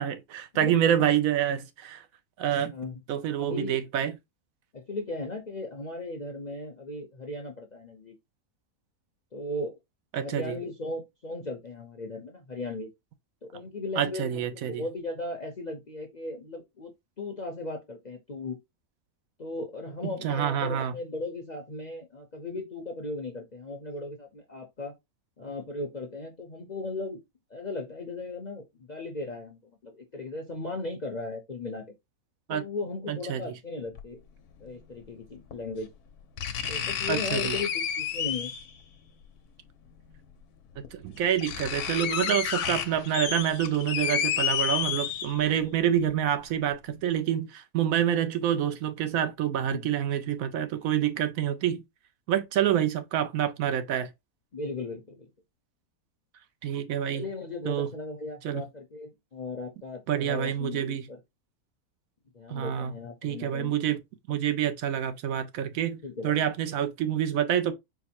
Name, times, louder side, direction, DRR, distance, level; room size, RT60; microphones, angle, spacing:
voice 1, 0.0-2.0 2.4-2.7 3.1-4.1 10.1-10.6 14.0-14.8 20.2-20.9 32.5-32.6 33.1-33.4 37.1-37.6 40.9-51.8 52.3-54.1 56.6-57.2 57.7-57.9 58.4-58.6 60.1-61.0 62.5-62.9 63.2-64.0 64.3-66.0 66.2-67.7, right 10 dB, 70° right, 0.9 m, -27 dB
voice 2, 3.4-3.8 4.7-8.2 9.3-9.8 10.1-12.9 13.4-16.9 17.2-18.6 19.4-24.9 25.4-27.2 27.5-31.8 32.5-34.2 34.6-35.9 36.7-38.5 49.5-49.9 54.5-55.3 57.1-61.2 62.3-63.7 66.0-66.4, left 2 dB, 45° left, 0.6 m, -37 dB
sound 1, 34.0-34.1 35.5-35.6 36.4-38.8 40.1-40.2 40.8-40.9 41.2-45.6 46.0-46.1, left 8 dB, 90° left, 1.2 m, -30 dB
4.6 x 2.1 x 4.3 m
omnidirectional pair, 1.6 m